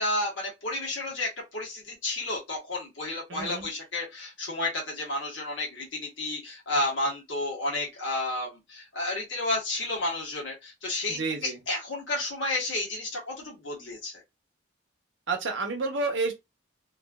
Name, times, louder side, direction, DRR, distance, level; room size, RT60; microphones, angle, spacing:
voice 1, 0.0-14.2, left 2 dB, 70° left, 1.3 m, -31 dB
voice 2, 3.3-3.7 11.1-11.6 15.3-16.3, right 3 dB, 70° right, 0.9 m, -30 dB
3.1 x 2.4 x 2.4 m
head